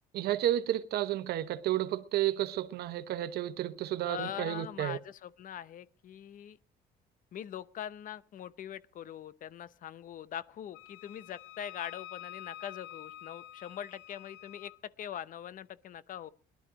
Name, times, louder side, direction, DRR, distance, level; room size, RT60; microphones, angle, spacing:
voice 1, 0.1-5.0, right 13 dB, 70° right, 1.0 m, -31 dB
voice 2, 4.1-6.6 7.3-16.3, left 10 dB, 55° left, 0.7 m, -42 dB
Wind instrument woodwind instrument, 10.7-14.8, left 13 dB, 90° left, 0.7 m, -48 dB
18.5 x 11.5 x 4.9 m
cardioid pair, 110°, 17 cm